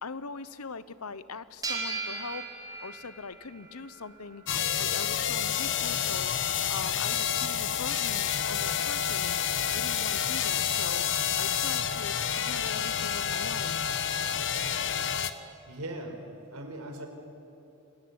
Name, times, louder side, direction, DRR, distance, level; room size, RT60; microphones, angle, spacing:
voice 1, 0.0-2.5 2.8-4.4 4.8-6.3 6.7-9.4 9.7-11.1 11.4-13.9, left 4 dB, 75° left, 15 dB, 1.0 m, -41 dB
sound 1, 1.6-4.6, right 3 dB, 20° right, 4.0 m, -38 dB
sound 2, 4.5-15.3, left 8 dB, 55° left, 1.2 m, -29 dB
voice 2, 15.7-16.2 16.5-17.1, right 1 dB, 75° right, 4 dB, 4.7 m, -39 dB
27.5 x 21.0 x 9.7 m, 3.0 s
head